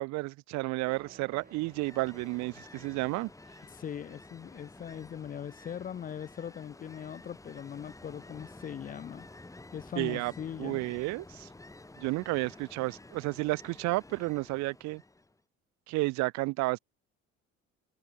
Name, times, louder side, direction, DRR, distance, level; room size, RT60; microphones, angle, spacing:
voice 1, 0.0-3.3 10.0-10.3 10.6-11.5 12.0-15.0 15.9-16.8, right 22 dB, 70° right, 0.8 m, -32 dB
sound 1, 0.8-3.8, right 6 dB, 30° right, 3.7 m, -58 dB
Ocean, 1.3-15.4, left 2 dB, 10° left, 6.6 m, -51 dB
voice 2, 3.7-9.3 9.7-10.9, left 9 dB, 30° left, 0.5 m, -40 dB
cardioid pair, 105°, 29 cm